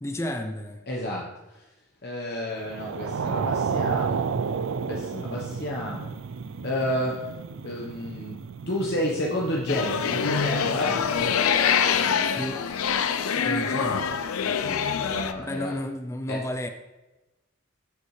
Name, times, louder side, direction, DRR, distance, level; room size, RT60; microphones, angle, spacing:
voice 1, 0.0-0.8 12.3-12.8 13.4-14.2 15.4-16.7, left 1 dB, 15° left, 6 dB, 0.4 m, -32 dB
voice 2, 0.9-1.6 2.0-4.3 4.9-6.1 6.6-7.2 7.6-8.4 8.6-11.0 11.9-12.2 14.4-15.7 16.3-16.4, left 1 dB, 50° left, -2 dB, 1.0 m, -31 dB
sound 1, 2.7-11.4, right 5 dB, 65° right, 0.4 m, -32 dB
sound 2, 9.7-15.3, left 7 dB, 85° left, 0.6 m, -25 dB
14.0 x 5.4 x 3.2 m, 1.1 s
head